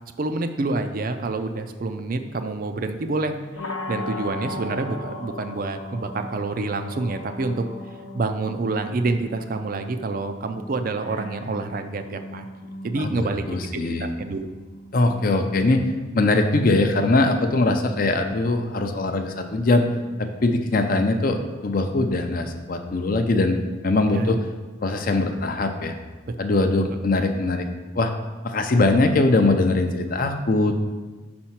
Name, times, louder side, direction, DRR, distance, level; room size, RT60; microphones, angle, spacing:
voice 1, 0.2-7.6 8.1-14.5 24.0-24.4 26.5-26.7, right 3 dB, 45° right, 7 dB, 0.4 m, -28 dB
sound 1, 3.6-23.4, left 1 dB, 90° left, 0.8 m, -40 dB
voice 2, 13.0-14.1 14.9-15.8 16.1-19.8 20.2-24.4 24.8-26.0 26.4-27.6 27.9-28.1 28.4-30.8, left 2 dB, 45° left, 6 dB, 0.5 m, -21 dB
5.5 x 4.3 x 5.8 m, 1.3 s
head